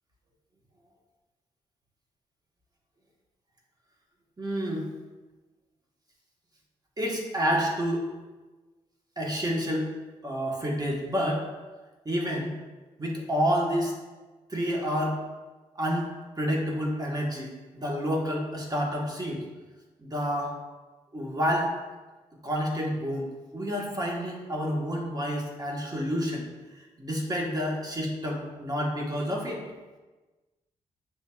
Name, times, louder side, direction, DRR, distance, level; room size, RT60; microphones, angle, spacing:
voice 1, 4.4-4.9 7.0-8.0 9.2-9.9 10.2-11.4 12.0-12.5 13.0-14.0 14.5-15.2 15.7-19.4 20.0-20.5 21.1-21.7 22.4-26.5 27.0-29.6, equal, 25° right, -1 dB, 1.2 m, -29 dB
7.1 x 2.8 x 2.3 m, 1.2 s
supercardioid pair, 50°, 14 cm